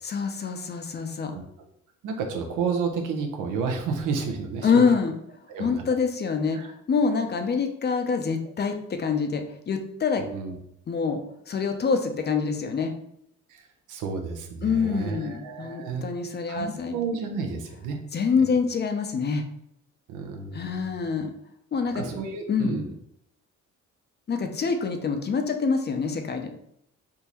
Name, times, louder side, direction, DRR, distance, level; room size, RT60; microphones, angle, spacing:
voice 1, 0.0-1.3 4.6-5.2 5.6-10.2 10.9-11.2 11.5-12.9 14.6-16.9 18.1-19.4 20.5-21.3 21.7-22.0 22.5-22.8 24.3-26.5, left 5 dB, 35° left, 6 dB, 0.5 m, -26 dB
voice 2, 2.0-4.9 5.5-5.8 6.5-6.7 10.2-10.5 13.5-16.0 16.5-18.0 20.1-20.8 21.9-22.9, right 5 dB, 85° right, 4 dB, 0.7 m, -31 dB
3.6 x 2.5 x 2.9 m, 0.73 s
cardioid pair, 90°, 30 cm